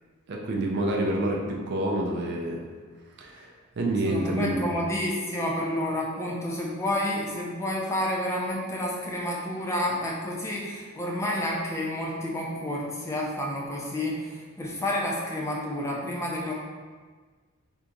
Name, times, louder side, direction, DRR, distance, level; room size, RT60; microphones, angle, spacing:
voice 1, 0.3-2.7 3.2-4.7, right 1 dB, 50° right, -1 dB, 0.4 m, -28 dB
voice 2, 4.0-16.5, left 1 dB, 15° left, -3 dB, 0.4 m, -30 dB
3.4 x 2.8 x 2.5 m, 1.5 s
head